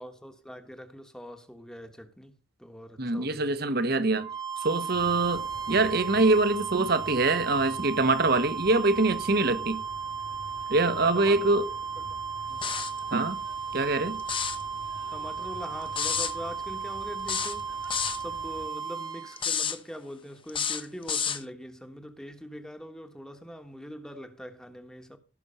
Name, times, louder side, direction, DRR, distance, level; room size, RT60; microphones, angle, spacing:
voice 1, 0.0-3.6 10.9-11.5 12.0-12.2 12.5-12.8 15.1-25.2, equal, 5° left, 1.3 m, -43 dB
voice 2, 3.0-4.3 4.6-9.8 10.7-11.6 13.1-13.4 13.7-14.2, right 3 dB, 55° right, 1.3 m, -24 dB
sound 1, 4.1-19.4, right 6 dB, 20° right, 0.9 m, -35 dB
sound 2, 4.9-18.7, equal, 85° right, 5.0 m, -48 dB
sound 3, 12.6-13.0 14.2-14.6 16.0-16.3 17.3-18.2 19.4-19.8 20.5-21.4, left 7 dB, 25° left, 1.0 m, -29 dB
17.0 x 6.2 x 5.6 m
head